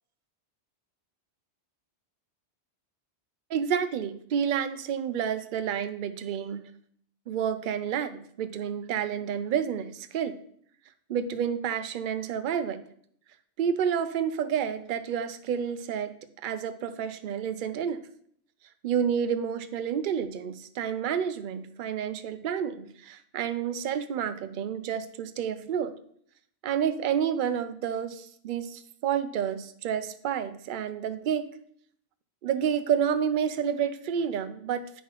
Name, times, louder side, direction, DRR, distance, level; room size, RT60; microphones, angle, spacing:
voice 1, 3.5-6.6 7.3-10.4 11.1-12.8 13.6-16.1 16.4-18.0 18.8-25.9 26.6-31.6 32.4-35.0, right 8 dB, 60° right, 11 dB, 0.6 m, -29 dB
8.3 x 5.6 x 3.0 m, 0.63 s
omnidirectional pair, 1.2 m